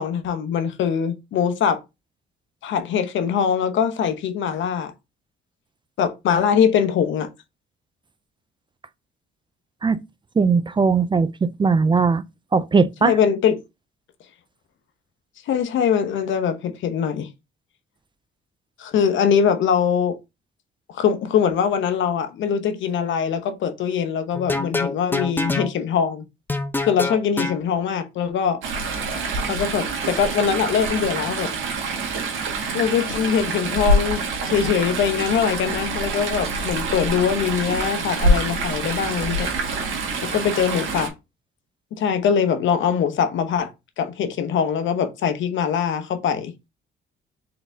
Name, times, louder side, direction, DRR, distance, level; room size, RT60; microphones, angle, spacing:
voice 1, 0.0-1.8 2.6-4.9 6.0-7.3 13.0-13.6 15.5-17.3 18.8-20.2 20.9-26.2 26.8-28.6 29.5-31.5 32.7-39.5 40.2-41.1 42.0-43.7 44.0-46.5, left 7 dB, 75° left, 0.9 m, -22 dB
voice 2, 10.4-12.2 12.5-13.2, right 5 dB, 25° right, 0.4 m, -19 dB
sound 1, 24.3-25.7 26.5-27.6, left 2 dB, 10° left, 0.7 m, -25 dB
Chatter / Stream, 28.6-41.1, right 2 dB, 80° right, 1.6 m, -25 dB
4.0 x 3.8 x 3.4 m
cardioid pair, 90°, 20 cm